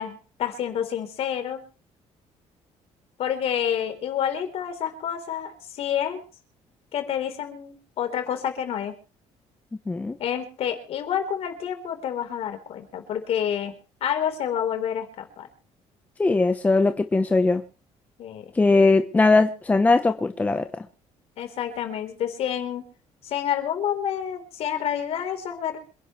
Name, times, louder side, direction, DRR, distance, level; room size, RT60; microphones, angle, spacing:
voice 1, 0.0-1.6 3.2-6.2 6.9-8.9 10.2-13.7 14.0-15.5 18.2-18.5 21.4-22.8 23.2-25.8, left 9 dB, 55° left, 6 dB, 4.0 m, -28 dB
voice 2, 9.9-10.2 16.2-17.6 18.5-20.9, left 3 dB, 15° left, 7 dB, 1.0 m, -20 dB
27.0 x 11.0 x 3.3 m, 0.36 s
cardioid pair, 175°, 12 cm